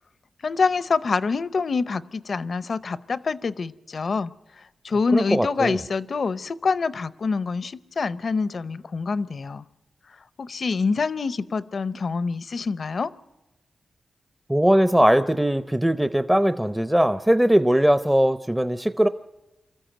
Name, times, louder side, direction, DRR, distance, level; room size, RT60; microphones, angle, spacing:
voice 1, 0.4-4.3 4.8-9.6 10.4-13.1, left 4 dB, 60° left, 17 dB, 0.6 m, -26 dB
voice 2, 5.1-5.8 14.5-19.1, equal, 5° right, 12 dB, 0.6 m, -20 dB
24.5 x 14.0 x 9.0 m, 1.0 s
wide cardioid pair, 85°, 0 cm